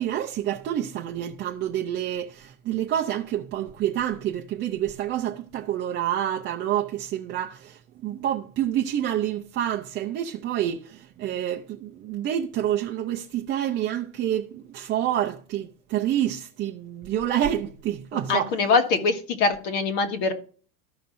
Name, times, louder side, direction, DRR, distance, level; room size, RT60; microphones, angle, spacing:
voice 1, 0.0-18.5, right 11 dB, 30° right, 0.5 m, -28 dB
voice 2, 18.3-20.3, left 4 dB, 50° left, 1.6 m, -23 dB
14.0 x 5.3 x 2.6 m
supercardioid pair, 150°, 42 cm